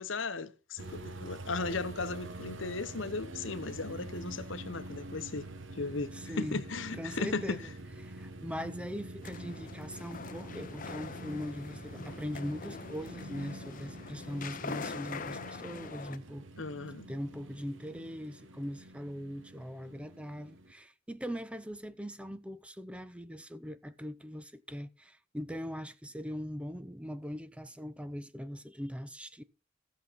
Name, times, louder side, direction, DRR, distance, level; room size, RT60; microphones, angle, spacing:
voice 1, 0.0-5.5 5.8-6.1 6.4-7.6 16.6-17.1, left 3 dB, 70° left, 0.9 m, -36 dB
sound 1, 0.8-20.7, right 1 dB, 70° right, 1.2 m, -46 dB
voice 2, 6.1-6.6 7.0-7.7 8.0-16.5 17.1-29.4, equal, 5° right, 0.6 m, -41 dB
sound 2, 9.2-16.2, left 4 dB, 45° left, 0.8 m, -43 dB
15.5 x 6.9 x 4.0 m
head